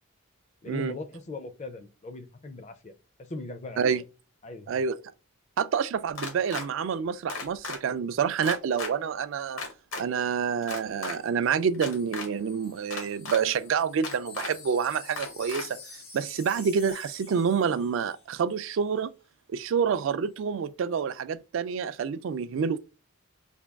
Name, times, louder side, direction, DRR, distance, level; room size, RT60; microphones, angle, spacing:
voice 1, 0.6-2.9 3.2-4.0 4.4-4.8, left 2 dB, 30° left, 0.4 m, -39 dB
voice 2, 4.7-5.0 5.6-9.6 10.0-19.1 19.5-22.8, right 6 dB, 65° right, 0.3 m, -28 dB
sound 1, 6.2-6.7 7.3-7.8 8.4-8.9 9.6-10.0 10.6-11.2 11.7-12.3 12.9-13.4 14.0-14.5 15.2-15.6, left 3 dB, 70° left, 0.9 m, -35 dB
Wind chime, 11.2-18.3 18.6-18.8, left 4 dB, 85° left, 1.7 m, -49 dB
3.5 x 2.2 x 3.3 m
head